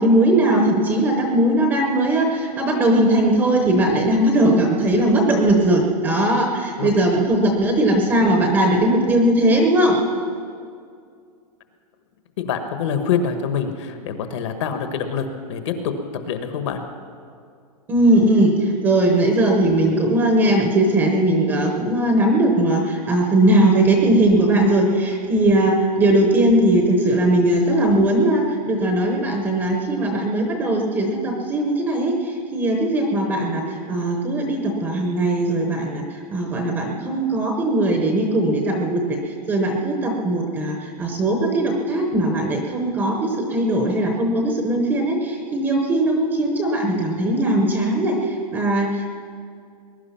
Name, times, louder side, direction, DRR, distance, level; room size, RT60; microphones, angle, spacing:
voice 1, 0.0-10.0 17.9-49.1, right 1 dB, 10° right, 2 dB, 0.9 m, -19 dB
voice 2, 12.4-16.0 16.3-16.8, left 7 dB, 45° left, 7 dB, 1.2 m, -25 dB
20.5 x 11.0 x 5.8 m, 2.3 s
supercardioid pair, 175°, 21 cm